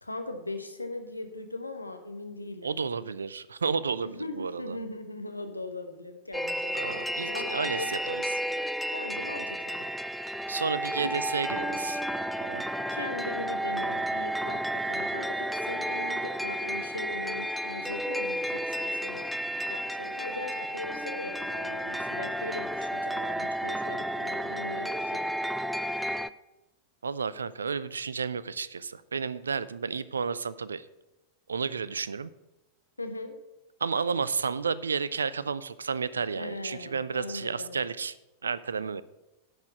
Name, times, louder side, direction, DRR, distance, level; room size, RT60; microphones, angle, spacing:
voice 1, 0.0-2.8 4.0-7.9 8.9-9.9 10.9-11.2 12.9-14.6 14.9-25.3 33.0-33.4 36.3-37.8, left 2 dB, 85° left, 7 dB, 1.0 m, -39 dB
voice 2, 2.6-4.8 6.7-8.2 10.5-12.0 12.4-12.6 27.0-30.9 31.5-32.3 33.8-38.2 38.4-39.0, right 5 dB, 70° right, 18 dB, 0.4 m, -32 dB
sound 1, 6.3-26.3, equal, ahead, 0.3 m, -32 dB
10.5 x 4.9 x 7.4 m, 1.0 s
figure-of-eight pair, 90°, 0 cm